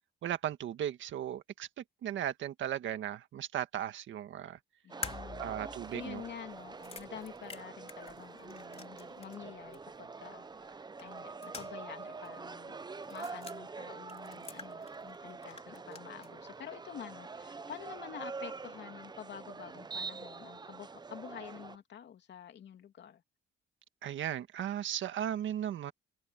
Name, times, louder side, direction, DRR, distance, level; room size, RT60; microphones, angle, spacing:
voice 1, 0.2-4.6 5.4-6.2 24.0-25.9, right 10 dB, 75° right, 1.8 m, -36 dB
voice 2, 4.8-5.5 5.9-12.8 13.1-23.2, left 9 dB, 60° left, 2.7 m, -48 dB
sound 1, 4.9-21.8, right 4 dB, 20° right, 0.7 m, -45 dB
sound 2, 5.0-9.5 9.7-9.8 11.0-12.0 12.2-12.3 13.0-13.6 14.1-15.2 15.4-16.3, left 4 dB, 30° left, 3.9 m, -47 dB
cardioid pair, 90°, 20 cm